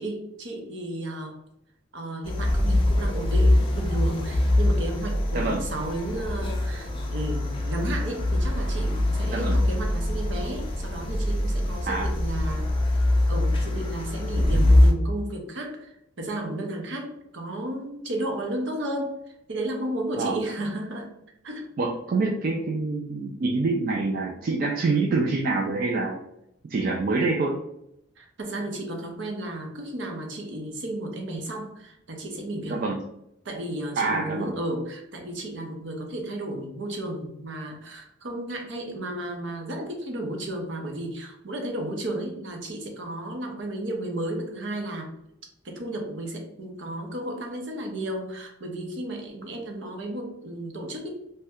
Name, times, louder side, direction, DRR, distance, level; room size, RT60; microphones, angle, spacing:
voice 1, 0.0-1.4 1.9-12.7 13.3-19.1 19.5-21.1 21.4-21.7 28.2-32.8 33.4-45.1 45.6-51.1, right 1 dB, 65° right, 2 dB, 0.7 m, -33 dB
sound 1, 2.2-14.9, left 1 dB, 25° left, 0.5 m, -23 dB
voice 2, 21.8-26.2 26.7-27.6 32.7-33.0 34.0-34.5, right 3 dB, 45° right, 0 dB, 0.3 m, -26 dB
2.7 x 2.2 x 3.4 m, 0.81 s
head